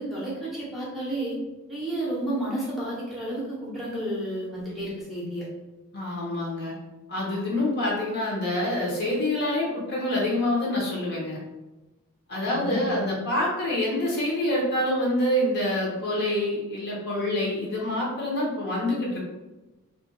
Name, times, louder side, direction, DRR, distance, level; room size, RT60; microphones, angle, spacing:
voice 1, 0.0-1.3 1.7-5.5 12.4-13.1, right 1 dB, ahead, -7 dB, 0.8 m, -31 dB
voice 2, 5.9-6.7 7.1-11.4 12.3-19.2, left 1 dB, 45° left, -3 dB, 0.9 m, -26 dB
2.5 x 2.4 x 3.8 m, 1.1 s
head